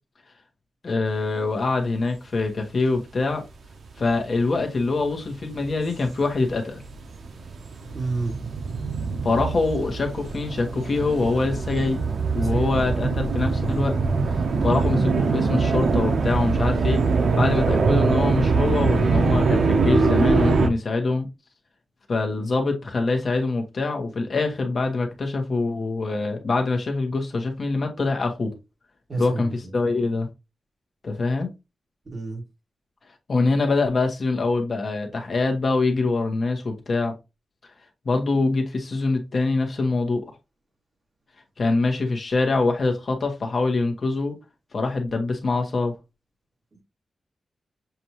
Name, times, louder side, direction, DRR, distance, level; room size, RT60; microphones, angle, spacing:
voice 1, 0.8-3.4 4.0-6.8 9.2-12.0 12.3-14.0 14.6-17.0 17.3-21.3 22.1-28.5 29.2-30.3 31.0-31.5 33.3-37.1 38.0-40.2 41.6-44.4 44.7-45.9, left 3 dB, 45° left, 1.1 m, -24 dB
sound 1, 4.1-4.4 5.0-20.7, right 4 dB, 75° right, 0.6 m, -23 dB
voice 2, 7.9-8.3 11.7-11.8 12.4-12.7 14.5-14.7 29.1-29.7 32.1-32.4, right 3 dB, 40° right, 1.9 m, -30 dB
6.8 x 2.5 x 2.9 m
wide cardioid pair, 150°, 0 cm